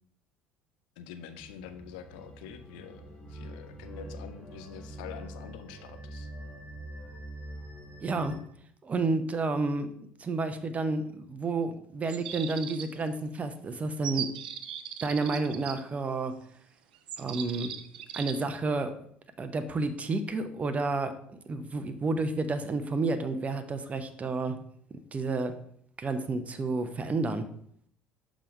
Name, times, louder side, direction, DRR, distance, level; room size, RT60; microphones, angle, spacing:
voice 1, 1.0-6.3, left 8 dB, 65° left, 8 dB, 0.6 m, -45 dB
sound 1, 1.4-8.4, right 1 dB, 20° left, 3.0 m, -44 dB
voice 2, 8.0-8.4 8.8-14.3 15.0-16.4 17.2-17.7 18.1-19.0 19.4-24.6 25.1-25.6 26.0-27.5, right 3 dB, 30° right, 9 dB, 0.8 m, -30 dB
sound 2, 12.1-13.1 14.0-15.7 17.1-18.4, right 9 dB, 75° right, 0.5 m, -38 dB
5.6 x 5.0 x 5.3 m, 0.64 s
figure-of-eight pair, 60°, 5 cm